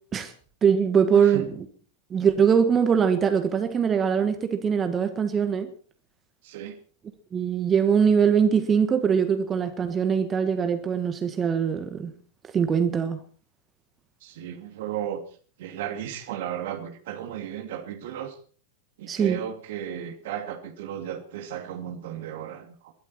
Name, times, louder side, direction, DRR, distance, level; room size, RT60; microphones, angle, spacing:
voice 1, 0.6-1.5 2.1-5.7 7.3-12.1 12.5-13.2 19.1-19.4, right 7 dB, 20° right, 1.7 m, -22 dB
voice 2, 1.1-1.5 6.4-6.8 14.2-15.2 15.6-18.3 19.0-22.9, right 10 dB, 55° right, 2.6 m, -34 dB
22.5 x 12.5 x 4.4 m
figure-of-eight pair, 90°, 0 cm